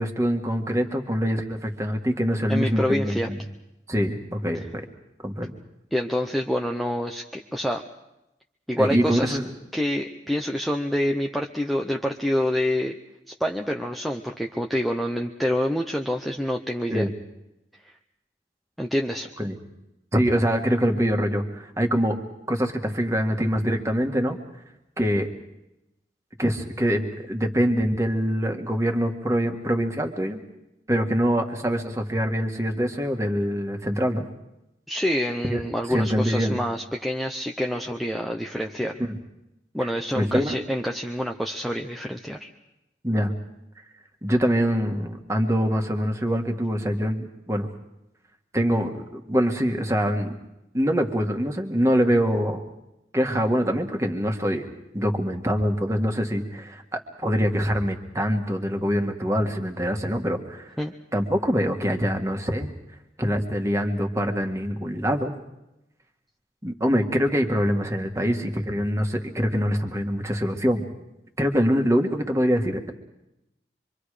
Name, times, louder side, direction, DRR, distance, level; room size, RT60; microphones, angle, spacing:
voice 1, 0.0-3.4 3.9-4.9 5.2-5.5 8.8-9.5 16.9-17.1 19.4-19.5 20.1-22.2 22.5-24.4 25.0-25.3 26.4-30.4 30.9-34.2 35.5-35.6 35.9-36.6 39.1-39.2 40.1-40.6 43.0-43.3 44.2-47.7 48.5-50.4 50.7-52.6 53.1-54.7 54.9-60.7 61.1-62.7 63.2-65.3 66.6-70.9 71.4-72.9, equal, 15° right, 4 dB, 1.8 m, -24 dB
voice 2, 2.5-3.3 5.9-7.8 8.7-9.4 9.7-12.9 13.4-17.1 17.8-17.9 18.8-19.3 34.9-38.9 39.7-42.5 60.8-60.9, equal, ahead, 2 dB, 0.8 m, -27 dB
26.0 x 24.5 x 5.0 m, 0.90 s
head